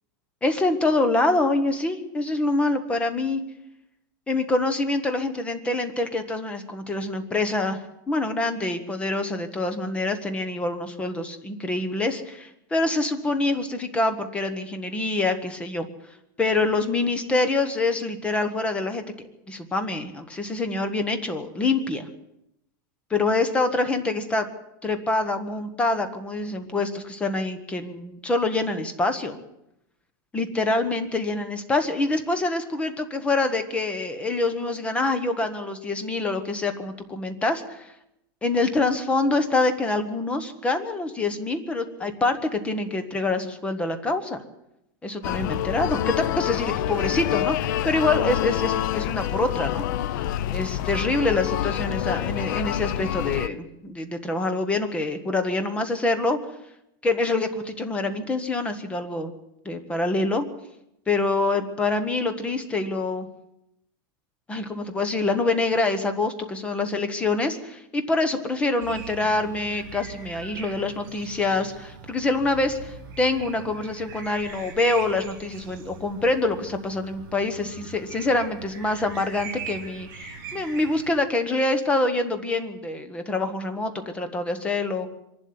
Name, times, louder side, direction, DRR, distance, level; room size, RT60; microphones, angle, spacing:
voice 1, 0.4-3.4 4.3-7.8 8.1-15.9 16.4-19.0 19.5-22.1 23.1-24.5 24.8-29.4 30.3-37.9 38.4-44.4 45.0-49.8 50.5-56.4 57.0-59.3 59.6-60.5 61.1-63.3 64.5-85.1, left 2 dB, 10° left, 9 dB, 1.4 m, -25 dB
sound 1, 45.2-53.5, left 12 dB, 55° left, 0.7 m, -27 dB
sound 2, 68.8-81.2, right 6 dB, 55° right, 6.3 m, -41 dB
24.0 x 12.0 x 9.7 m, 0.84 s
supercardioid pair, 170°, 12 cm